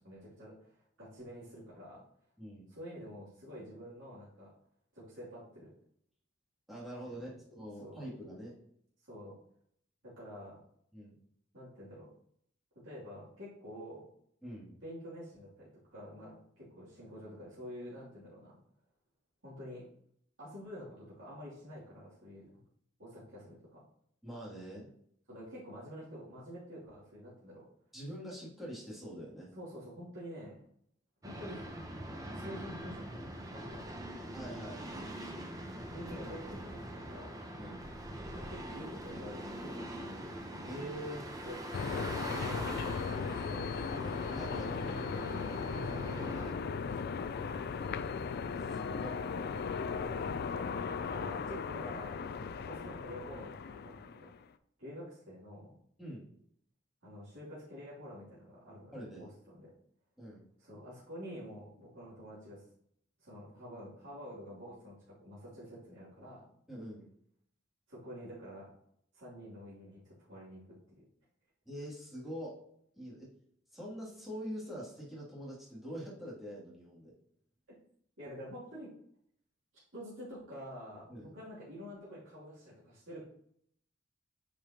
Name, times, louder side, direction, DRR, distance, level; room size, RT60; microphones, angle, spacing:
voice 1, 0.0-2.0 2.7-4.5 4.9-5.7 7.0-7.2 7.8-8.0 9.1-9.4 10.0-10.6 11.5-12.1 12.8-14.1 14.8-18.6 19.4-19.8 20.4-22.5 23.0-23.8 25.3-27.6 29.5-30.6 31.2-31.6 32.3-34.0 35.8-37.5 38.3-39.9 40.1-40.7 41.4-43.7 45.3-45.6 45.8-48.0 50.1-52.2 52.6-54.3 54.8-55.7 57.0-59.7 60.6-62.6 63.2-66.4 67.9-68.7 69.1-70.6 71.0-71.1 78.2-78.9 79.9-83.3, equal, 85° right, -9 dB, 2.8 m, -48 dB
voice 2, 2.4-2.7 6.7-8.5 10.9-11.1 14.4-14.7 24.2-24.9 27.9-29.5 34.3-35.1 37.6-37.8 40.7-41.3 44.3-45.1 48.7-49.2 52.3-52.5 56.0-56.3 58.9-59.3 60.2-60.4 66.7-67.1 71.7-72.5 72.9-73.3 73.7-77.1 81.1-81.3, equal, ahead, -7 dB, 2.5 m, -44 dB
sound 1, 31.2-46.5, right 1 dB, 20° right, 0.8 m, -43 dB
sound 2, 41.7-54.4, left 5 dB, 55° left, 0.4 m, -37 dB
8.7 x 5.1 x 2.9 m, 0.68 s
head